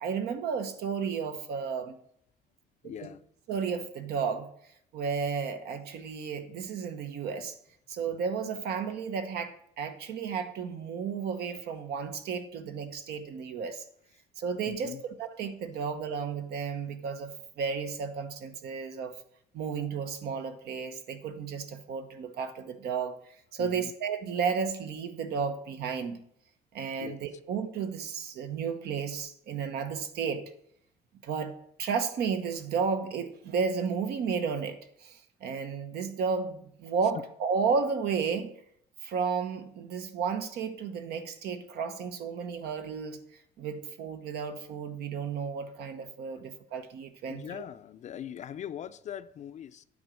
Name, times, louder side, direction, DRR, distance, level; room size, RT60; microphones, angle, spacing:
voice 1, 0.0-2.0 3.0-3.1 3.5-4.5 4.9-7.6 7.9-13.8 14.4-19.1 19.5-26.2 26.7-30.4 31.2-31.5 31.8-38.5 39.0-43.2 43.6-47.7, right 6 dB, 70° right, 1.0 m, -33 dB
voice 2, 2.8-3.2 14.7-15.0 23.6-23.9 27.0-27.2 47.3-49.8, left 10 dB, 45° left, 0.4 m, -41 dB
9.6 x 4.0 x 6.1 m
cardioid pair, 110°, 17 cm